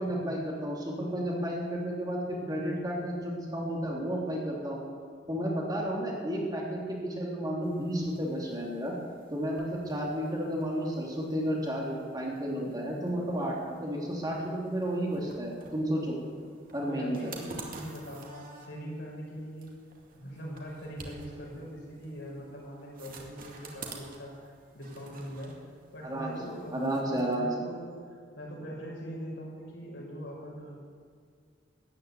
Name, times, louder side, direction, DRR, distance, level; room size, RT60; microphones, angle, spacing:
voice 1, 0.0-4.8 5.3-8.9 9.3-16.2 16.7-17.3 26.0-26.3 26.7-27.5, equal, 20° right, -3 dB, 3.0 m, -32 dB
sound 1, 7.6-27.4, right 3 dB, 50° right, 2.4 m, -51 dB
voice 2, 16.9-19.7 20.1-24.4 24.7-30.7, equal, 75° left, -2 dB, 5.5 m, -42 dB
14.0 x 10.5 x 9.4 m, 2.1 s
head